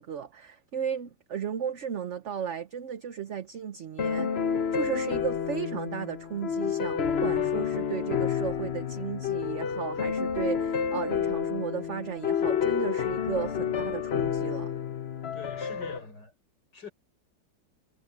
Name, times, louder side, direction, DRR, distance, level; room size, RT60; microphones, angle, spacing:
voice 1, 0.0-14.7, right 8 dB, 50° right, 1.0 m, -35 dB
sound 1, 4.0-16.0, left 7 dB, 45° left, 1.0 m, -29 dB
voice 2, 15.3-16.3 16.7-16.9, left 5 dB, 70° left, 6.3 m, -44 dB
omnidirectional pair, 1.9 m